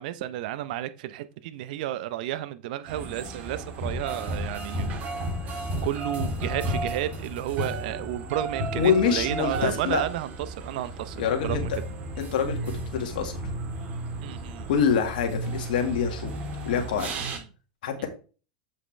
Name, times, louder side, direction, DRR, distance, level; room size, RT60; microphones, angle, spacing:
voice 1, 0.0-5.0 5.4-11.7 14.2-14.7 17.1-17.4 18.0-18.1, right 13 dB, 65° right, 13 dB, 0.8 m, -32 dB
sound 1, 2.9-17.4, right 1 dB, 35° right, 3.1 m, -33 dB
voice 2, 8.7-10.0 11.2-11.8 12.2-13.4 14.7-16.4 16.6-17.1 17.8-18.1, left 7 dB, 70° left, 3 dB, 1.8 m, -25 dB
7.5 x 5.5 x 3.3 m, 0.36 s
hypercardioid pair, 105°, 5 cm